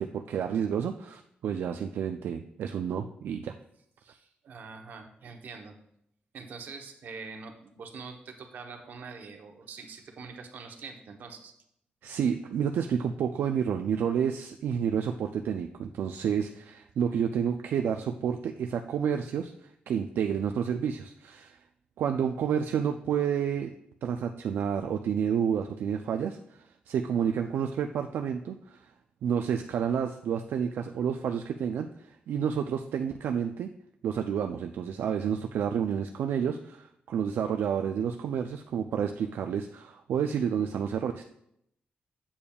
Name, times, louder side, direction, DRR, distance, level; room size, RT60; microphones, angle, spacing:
voice 1, 0.0-3.5 12.0-21.6 22.0-23.7 24.0-28.9 29.2-31.9 32.3-33.7 34.0-41.2, right 8 dB, 85° right, 5 dB, 0.3 m, -30 dB
voice 2, 4.0-5.8 6.3-11.5, right 4 dB, 65° right, 4 dB, 0.9 m, -44 dB
8.6 x 6.9 x 2.3 m, 0.75 s
wide cardioid pair, 160°, 3 cm